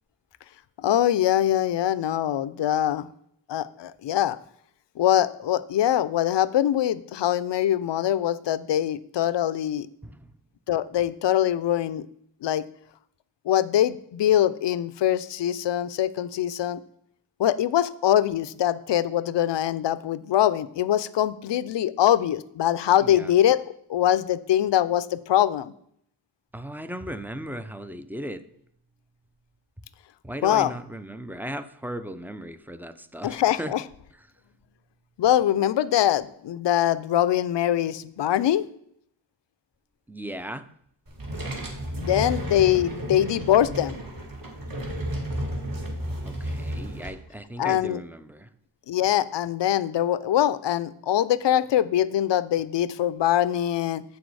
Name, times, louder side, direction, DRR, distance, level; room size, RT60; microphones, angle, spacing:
voice 1, 0.8-3.1 3.5-4.4 5.0-9.9 10.7-12.1 12.4-12.6 13.5-16.8 17.4-23.6 23.9-25.7 30.4-30.7 33.2-33.8 35.2-38.7 42.0-44.0 47.6-48.0 48.9-54.0, left 11 dB, 70° left, 16 dB, 0.5 m, -23 dB
voice 2, 26.5-28.4 30.2-33.7 40.1-40.6 46.2-48.5, right 1 dB, 5° right, 12 dB, 0.4 m, -36 dB
sound 1, 41.1-47.1, right 1 dB, 45° right, 1.9 m, -32 dB
7.2 x 6.2 x 4.7 m, 0.69 s
cardioid pair, 70°, 46 cm